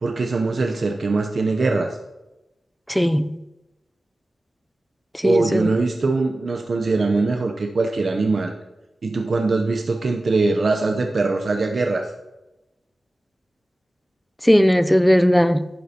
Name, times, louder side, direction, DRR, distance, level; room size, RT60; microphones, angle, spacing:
voice 1, 0.0-2.0 5.2-8.5 9.0-12.1, right 3 dB, 50° right, 0.6 m, -22 dB
voice 2, 2.9-3.3 5.2-5.7 14.4-15.7, equal, 5° left, 0.3 m, -17 dB
11.0 x 8.4 x 2.8 m
wide cardioid pair, 145°, 0 cm